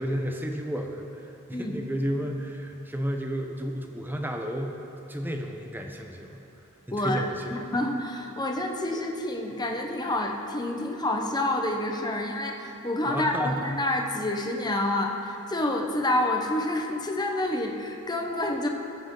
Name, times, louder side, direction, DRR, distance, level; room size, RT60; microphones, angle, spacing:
voice 1, 0.0-4.7 5.1-6.4 6.9-7.6 13.0-13.8, equal, 10° right, 3 dB, 0.9 m, -32 dB
voice 2, 6.9-7.2 7.5-18.7, left 1 dB, 20° left, 2 dB, 1.0 m, -28 dB
19.5 x 7.8 x 3.9 m, 2.8 s
head